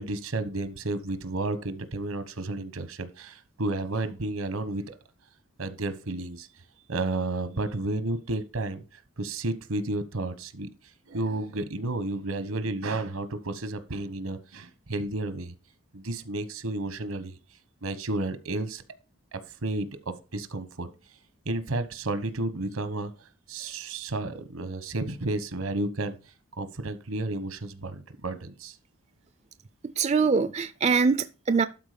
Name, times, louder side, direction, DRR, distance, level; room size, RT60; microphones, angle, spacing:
voice 1, 0.0-5.0 5.6-6.5 6.9-8.8 9.2-10.7 11.1-15.5 15.9-17.3 17.8-18.8 19.3-20.9 21.5-23.1 23.5-26.2 26.6-28.8, right 2 dB, 85° right, 1.1 m, -32 dB
voice 2, 29.8-31.7, right 5 dB, 30° right, 0.3 m, -23 dB
12.0 x 4.4 x 5.1 m
head